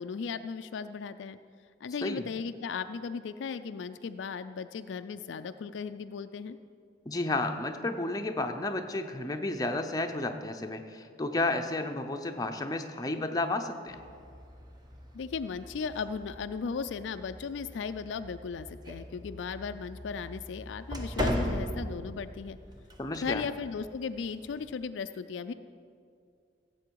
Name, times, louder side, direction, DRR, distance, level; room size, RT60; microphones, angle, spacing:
voice 1, 0.0-1.4 1.8-6.6 15.1-22.6 23.2-25.5, left 5 dB, 70° left, 10 dB, 0.4 m, -36 dB
voice 2, 7.1-14.0 23.0-23.4, left 2 dB, 20° left, 5 dB, 0.6 m, -32 dB
sound 1, 13.9-24.8, equal, 20° right, 0.9 m, -39 dB
16.0 x 7.7 x 4.6 m, 2.3 s
head